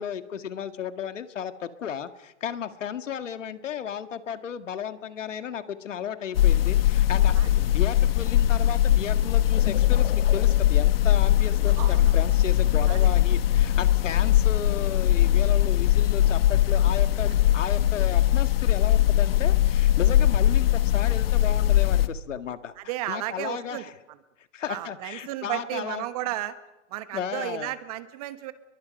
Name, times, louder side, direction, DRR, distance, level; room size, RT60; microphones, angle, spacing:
voice 1, 0.0-23.9 24.5-26.1 27.1-27.7, left 8 dB, 80° left, 9 dB, 1.8 m, -34 dB
sound 1, 6.4-22.1, left 12 dB, 50° left, 1.3 m, -21 dB
voice 2, 11.8-12.1 12.9-13.1 22.8-23.8 24.7-26.5 26.9-28.5, right 14 dB, 30° right, 12 dB, 1.2 m, -33 dB
29.5 x 22.5 x 5.3 m, 1.0 s
hypercardioid pair, 160°, 37 cm